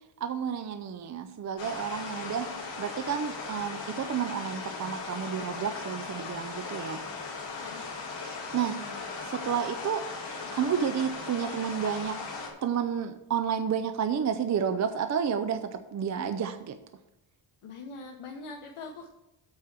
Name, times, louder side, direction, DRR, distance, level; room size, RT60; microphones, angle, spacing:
voice 1, 0.2-2.5 2.8-7.0 8.2-8.8 9.2-10.0 10.5-12.2 12.6-16.8, right 7 dB, 35° right, 10 dB, 0.4 m, -31 dB
sound 1, 1.6-12.5, left 4 dB, 55° left, 2.5 m, -38 dB
voice 2, 7.5-7.9 8.7-9.0 16.2-16.4 17.6-19.1, left 3 dB, 80° left, 1 dB, 1.1 m, -43 dB
8.5 x 4.6 x 7.3 m, 0.89 s
wide cardioid pair, 145°, 50 cm